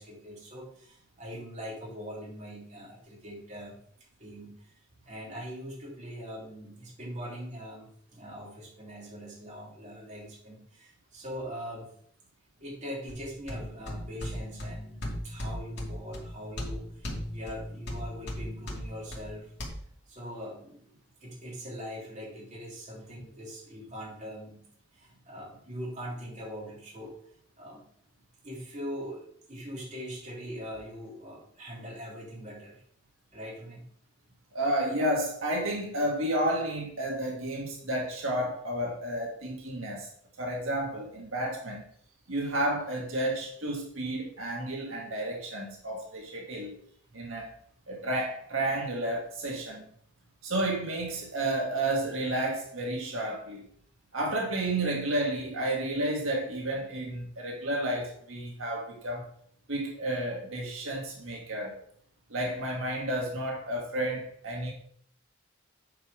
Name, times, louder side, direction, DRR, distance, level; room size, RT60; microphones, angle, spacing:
voice 1, 0.0-3.8 4.2-4.7 5.0-11.9 12.6-19.5 20.1-20.9 21.2-27.1 27.6-27.8 28.4-32.8 33.3-33.8, equal, 35° right, 3.2 m, -42 dB
sound 1, 13.1-19.7, equal, 55° left, 2.3 m, -38 dB
voice 2, 34.5-40.1 40.4-41.8 42.3-46.8 47.1-47.5 47.9-49.8 50.4-53.7 54.1-59.3 59.7-61.7 62.3-64.7, right 1 dB, 85° right, 1.6 m, -31 dB
8.8 x 4.9 x 4.9 m
head